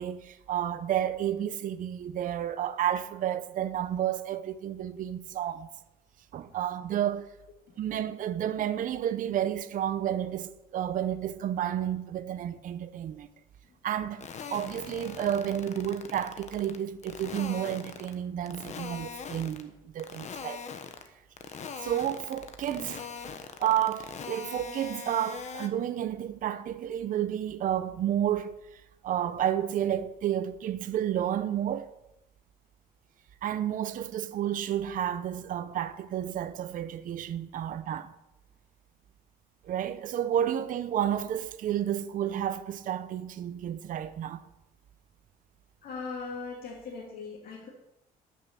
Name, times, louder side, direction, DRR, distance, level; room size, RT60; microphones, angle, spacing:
voice 1, 0.0-5.7 6.3-7.3 7.8-13.3 13.8-14.2 14.5-20.6 21.8-23.0 23.6-31.9 33.4-38.1 39.6-44.4, right 10 dB, 50° right, 0.7 m, -31 dB
sound 1, 14.2-16.8 17.0-18.1 18.4-19.6 20.0-21.1 21.4-25.7, left 6 dB, 45° left, 1.2 m, -40 dB
voice 2, 45.8-47.7, left 4 dB, 60° left, 2.3 m, -39 dB
11.0 x 6.4 x 6.7 m
cardioid pair, 110°, 17 cm